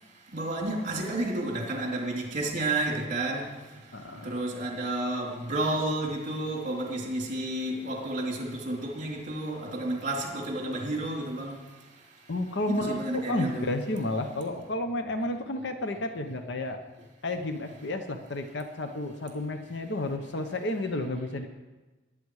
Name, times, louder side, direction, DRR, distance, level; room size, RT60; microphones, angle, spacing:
voice 1, 0.3-3.5 4.2-11.6 12.7-13.7, right 2 dB, 45° right, -1 dB, 3.3 m, -31 dB
voice 2, 3.9-4.4 12.3-16.8 17.2-21.5, left 1 dB, 65° left, 7 dB, 1.0 m, -31 dB
20.5 x 9.0 x 4.9 m, 1.2 s
head